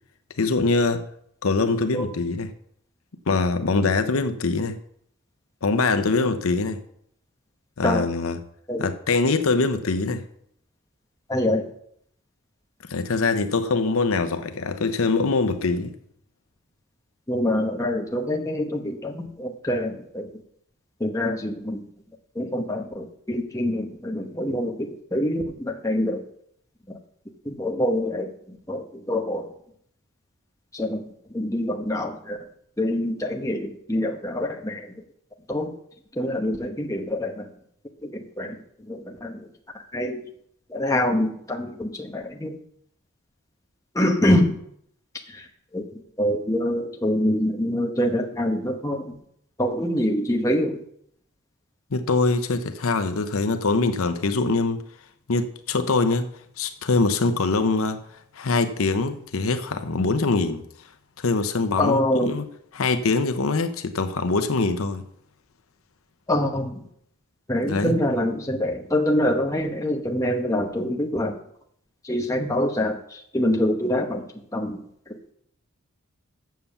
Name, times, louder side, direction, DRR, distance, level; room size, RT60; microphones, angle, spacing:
voice 1, 0.4-1.0 1.4-2.5 3.3-4.8 5.6-6.8 7.8-8.4 8.8-10.2 12.9-15.9 51.9-54.8 55.3-56.3 56.6-58.0 58.3-60.6 61.2-62.5 62.7-65.0 67.7-68.0, left 3 dB, 75° left, 9 dB, 0.7 m, -23 dB
voice 2, 11.3-11.7 17.3-20.3 21.0-21.8 22.4-26.2 26.9-27.0 27.5-29.5 30.7-32.4 32.8-34.9 35.5-35.7 36.2-37.5 38.0-38.6 38.9-39.5 39.9-40.2 40.7-42.6 43.9-44.5 45.3-45.5 45.7-45.9 46.2-49.1 49.6-50.8 61.8-62.4 66.3-66.8 67.5-71.4 72.0-74.2 74.5-74.8, left 1 dB, 15° left, 1 dB, 1.0 m, -25 dB
7.5 x 7.1 x 7.0 m, 0.69 s
head